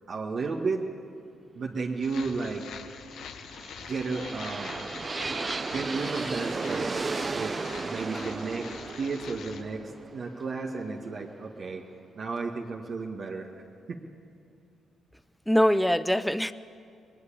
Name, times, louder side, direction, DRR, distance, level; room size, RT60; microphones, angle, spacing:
voice 1, 0.1-0.8 1.5-2.7 3.9-4.8 5.7-7.6 7.8-11.8 12.2-13.5 13.9-14.0, right 4 dB, 55° right, -1 dB, 1.8 m, -33 dB
sound 1, 2.0-9.6, left 7 dB, 75° left, 1.5 m, -44 dB
sound 2, 3.4-11.4, right 3 dB, 35° right, 0.9 m, -35 dB
voice 2, 15.5-16.5, equal, 5° left, 14 dB, 0.6 m, -23 dB
21.0 x 20.5 x 8.7 m, 2.5 s
supercardioid pair, 65°, 0 cm